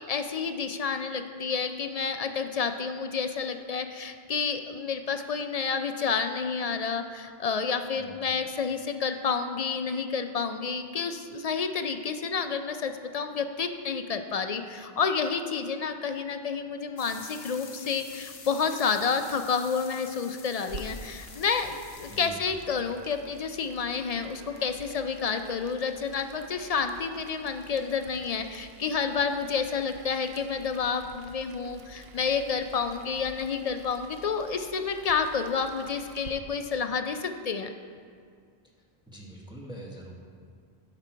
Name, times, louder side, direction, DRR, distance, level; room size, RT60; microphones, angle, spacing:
voice 1, 0.1-37.7, left 5 dB, 50° left, 7 dB, 0.5 m, -30 dB
sound 1, 17.0-22.3, left 6 dB, 75° left, 1.0 m, -47 dB
Boiling, 20.6-36.3, right 3 dB, 75° right, 0.9 m, -49 dB
voice 2, 39.1-40.1, right 1 dB, 5° right, -3 dB, 1.2 m, -43 dB
10.5 x 5.9 x 4.5 m, 2.1 s
omnidirectional pair, 1.1 m